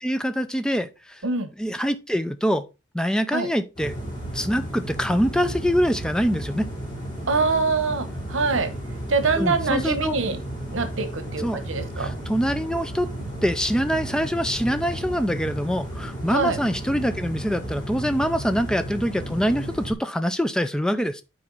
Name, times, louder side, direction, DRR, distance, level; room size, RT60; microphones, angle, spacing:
voice 1, 0.0-1.2 1.6-2.6 2.9-3.9 4.3-6.7 9.4-10.2 11.4-11.6 12.0-13.1 13.4-21.2, equal, 5° left, 0.4 m, -24 dB
sound 1, 3.8-19.9, right 1 dB, 20° left, 3.2 m, -33 dB
voice 2, 7.3-8.7 9.1-10.4 10.7-12.1 16.3-16.6, right 4 dB, 85° right, 1.1 m, -24 dB
8.7 x 4.5 x 4.0 m
head